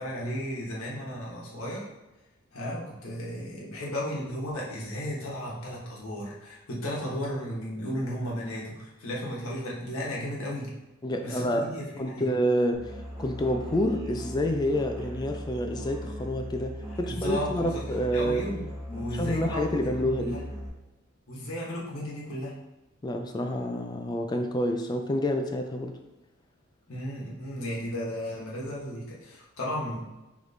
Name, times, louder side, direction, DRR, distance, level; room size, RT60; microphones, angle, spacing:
voice 1, 0.0-1.8 2.5-10.7 11.2-12.3 17.1-17.8 18.1-20.4 21.3-22.5 26.9-30.1, equal, 80° left, -4 dB, 1.1 m, -34 dB
voice 2, 11.0-11.7 12.0-18.5 19.2-20.4 23.0-26.0, equal, 20° left, 5 dB, 0.3 m, -28 dB
Musical instrument, 12.7-20.7, equal, 15° right, 1.3 m, -38 dB
4.0 x 3.1 x 3.2 m, 1.0 s
head